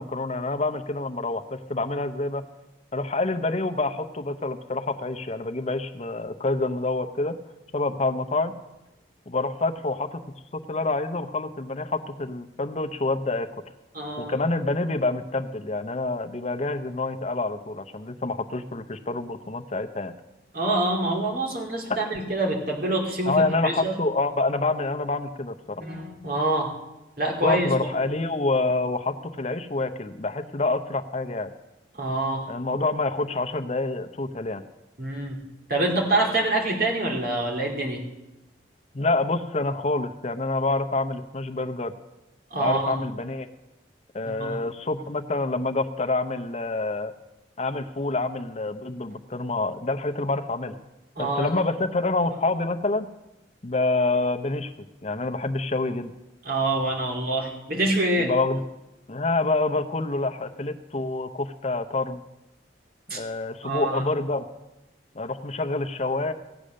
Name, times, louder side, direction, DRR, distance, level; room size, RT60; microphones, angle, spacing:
voice 1, 0.0-2.4 2.9-7.4 7.7-8.5 9.3-10.2 10.5-13.5 14.2-20.1 23.3-25.8 27.4-31.5 32.5-34.6 38.9-41.9 42.6-43.5 44.1-47.1 47.6-50.7 51.2-53.1 53.6-54.7 55.0-56.1 58.2-58.6 59.1-62.2 63.1-64.5 65.1-66.3, left 2 dB, 35° left, 7 dB, 0.8 m, -27 dB
voice 2, 13.9-14.3 20.5-24.0 25.8-26.7 27.2-27.7 32.0-32.5 35.0-35.4 35.7-38.0 42.5-43.0 44.2-44.6 51.2-51.5 56.4-58.3 63.1-63.2 63.6-64.0, right 2 dB, 50° right, -1 dB, 2.7 m, -26 dB
15.5 x 8.4 x 6.4 m, 0.98 s
head